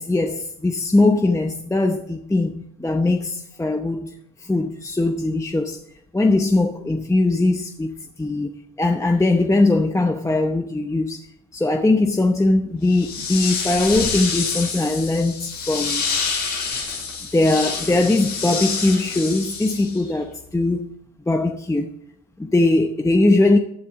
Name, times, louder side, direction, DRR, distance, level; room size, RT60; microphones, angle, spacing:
voice 1, 0.0-4.1 4.4-5.8 6.1-8.5 8.8-11.3 11.5-16.0 17.3-20.9 21.3-21.9 22.4-23.6, left 2 dB, 10° left, 0.8 m, -20 dB
sound 1, 12.9-20.1, left 5 dB, 75° left, 5.7 m, -27 dB
14.5 x 9.2 x 3.7 m
cardioid pair, 90°, 30 cm